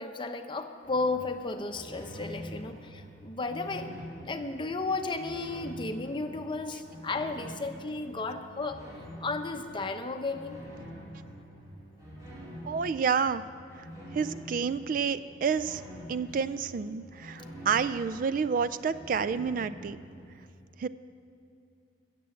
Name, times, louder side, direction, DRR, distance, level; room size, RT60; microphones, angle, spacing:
voice 1, 0.0-3.9 4.2-8.8 9.2-10.6, left 3 dB, 25° left, 6 dB, 0.8 m, -34 dB
sound 1, 0.8-20.3, equal, 20° right, 2.8 m, -46 dB
voice 2, 12.6-13.4 14.1-15.8 16.1-20.0 20.8-20.9, right 6 dB, 50° right, 14 dB, 0.3 m, -29 dB
15.0 x 7.6 x 7.7 m, 2.5 s
head